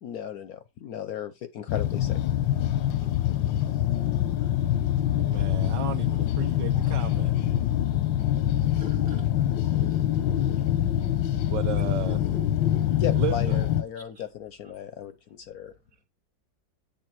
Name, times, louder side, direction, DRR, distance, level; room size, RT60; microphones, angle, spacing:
voice 1, 0.0-2.2 13.0-15.7, left 9 dB, 65° left, 0.9 m, -35 dB
sound 1, 1.7-13.8, left 11 dB, 90° left, 1.5 m, -25 dB
voice 2, 2.6-5.5 6.5-6.9 7.6-11.8 12.5-13.0 13.9-14.3 14.6-14.7 15.0-15.1 15.5-15.6 15.9-16.1, right 1 dB, 50° right, 1.7 m, -57 dB
voice 3, 5.2-7.3 11.4-12.2 13.1-13.7, right 11 dB, 75° right, 1.2 m, -35 dB
8.6 x 3.6 x 5.9 m
omnidirectional pair, 2.0 m